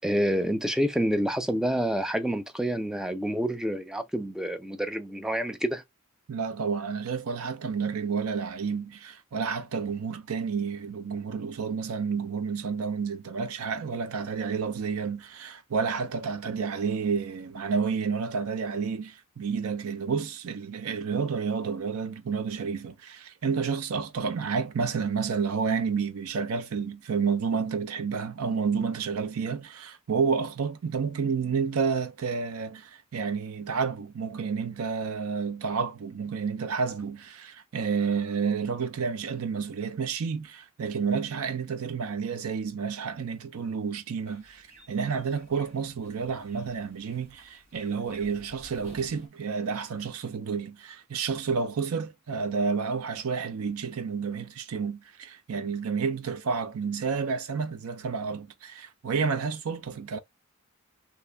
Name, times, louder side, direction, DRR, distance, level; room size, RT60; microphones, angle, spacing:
voice 1, 0.0-5.8, equal, 5° right, 0.3 m, -28 dB
voice 2, 6.3-60.2, right 5 dB, 80° right, 0.5 m, -30 dB
sound 1, 44.3-49.3, right 1 dB, 35° right, 1.4 m, -52 dB
2.9 x 2.5 x 3.2 m
head